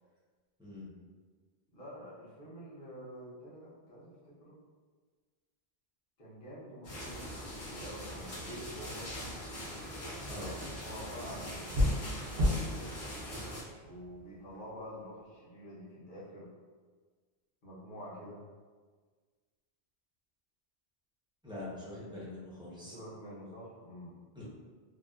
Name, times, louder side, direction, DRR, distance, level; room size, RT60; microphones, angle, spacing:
voice 1, 0.6-0.9 10.3-10.5 21.4-23.0 24.3-24.4, left 2 dB, 5° right, -9 dB, 0.6 m, -44 dB
voice 2, 1.7-4.6 6.2-9.1 10.8-12.0 12.3-12.9 13.8-16.5 17.6-18.4 22.6-24.2, equal, 55° left, -8 dB, 1.0 m, -48 dB
sound 1, 6.8-13.6, equal, 90° left, 1.0 m, -42 dB
sound 2, 9.8-14.7, left 1 dB, 65° right, 0.8 m, -35 dB
2.8 x 2.1 x 2.3 m, 1.5 s
omnidirectional pair, 1.0 m